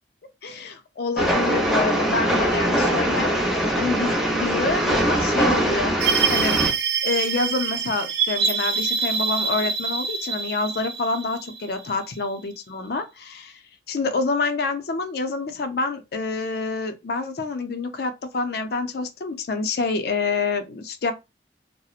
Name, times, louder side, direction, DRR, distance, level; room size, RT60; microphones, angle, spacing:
voice 1, 0.4-3.3 3.8-5.9 6.3-6.6 7.0-13.6 13.9-21.1, left 3 dB, 60° left, 0.4 m, -27 dB
Train, 1.2-6.7, equal, ahead, 0.6 m, -22 dB
sound 1, 6.0-12.3, right 6 dB, 70° right, 0.5 m, -25 dB
2.8 x 2.0 x 2.3 m
head